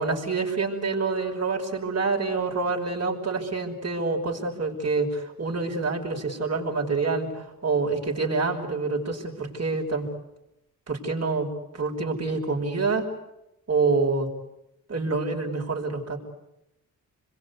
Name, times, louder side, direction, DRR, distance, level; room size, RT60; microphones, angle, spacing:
voice 1, 0.0-10.1 10.9-11.5 11.7-13.1 13.7-14.3 14.9-16.2, right 4 dB, 45° right, 1 dB, 5.8 m, -27 dB
27.5 x 22.5 x 8.4 m, 0.88 s
cardioid pair, 75°, 36 cm